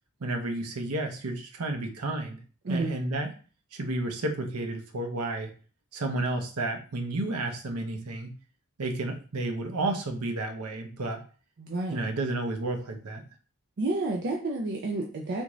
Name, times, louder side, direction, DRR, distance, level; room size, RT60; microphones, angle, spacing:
voice 1, 0.2-2.4 2.7-3.3 3.7-5.5 5.9-8.4 8.8-11.2 11.9-13.2, right 2 dB, 90° right, 5 dB, 0.7 m, -31 dB
voice 2, 11.6-12.0 13.8-15.4, right 2 dB, 50° right, 0 dB, 0.5 m, -30 dB
3.5 x 2.5 x 3.0 m, 0.38 s
head